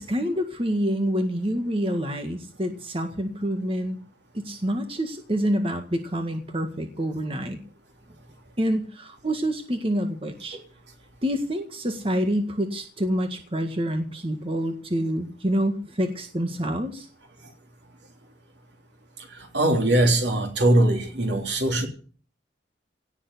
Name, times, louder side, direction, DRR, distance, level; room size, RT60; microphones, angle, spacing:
voice 1, 0.0-4.0 4.3-7.6 8.6-10.6 11.2-17.1, equal, 30° right, 5 dB, 1.8 m, -27 dB
voice 2, 19.4-21.9, right 1 dB, 70° right, 4 dB, 3.5 m, -21 dB
17.5 x 7.2 x 10.0 m, 0.42 s
head